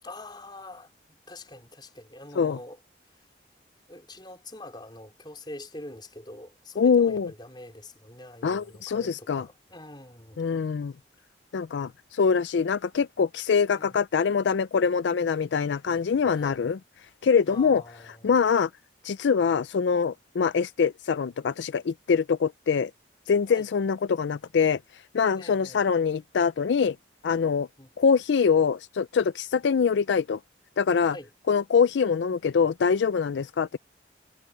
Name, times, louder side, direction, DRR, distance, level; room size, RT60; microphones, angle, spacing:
voice 1, 0.0-2.8 3.1-3.3 3.9-10.4 13.7-14.0 16.3-16.6 17.5-18.3 23.5-23.7 25.4-25.8 27.6-27.9 31.1-31.3, left 1 dB, 25° left, 3.9 m, -45 dB
voice 2, 6.8-7.3 8.4-9.4 10.4-10.9 11.5-16.8 17.2-17.8 18.2-18.7 19.0-22.9 23.3-24.8 25.1-27.0 27.2-27.7 28.0-30.4 30.8-31.1 31.5-33.8, left 6 dB, 75° left, 0.4 m, -24 dB
head